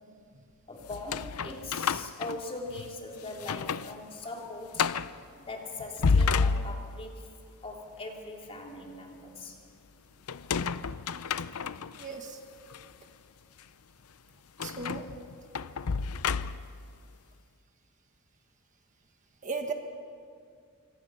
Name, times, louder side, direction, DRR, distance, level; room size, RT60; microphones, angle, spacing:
voice 1, 0.7-4.9 5.5-7.3 7.6-9.6 15.4-15.5, left 2 dB, 25° left, 0 dB, 3.3 m, -41 dB
sound 1, 0.9-2.9 3.3-3.9 4.2-4.3 4.7-5.2 5.8-7.1 10.3-12.0 12.7-12.8 14.6-16.8, left 5 dB, 80° left, 0.6 m, -30 dB
voice 2, 11.9-12.4 14.6-15.0 19.4-19.7, right 4 dB, 35° right, 5 dB, 1.5 m, -36 dB
26.5 x 24.5 x 5.8 m, 2.2 s
head